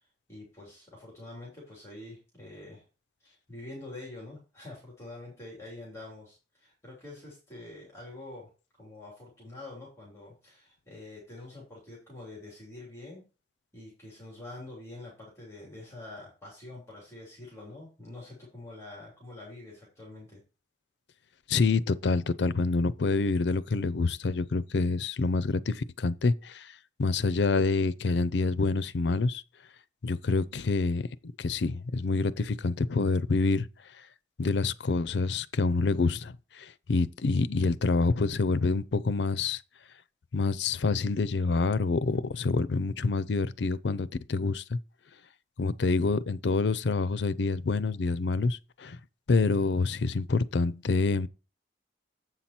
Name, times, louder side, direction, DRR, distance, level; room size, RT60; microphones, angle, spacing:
voice 1, 0.3-2.8 3.2-8.5 8.8-13.2 13.7-20.4, left 2 dB, 15° left, 3.2 m, -46 dB
voice 2, 21.5-29.4 30.0-31.1 31.4-33.7 34.4-39.6 40.3-44.8 45.6-49.0 49.3-51.3, left 3 dB, 70° left, 0.5 m, -27 dB
8.0 x 5.7 x 4.4 m
head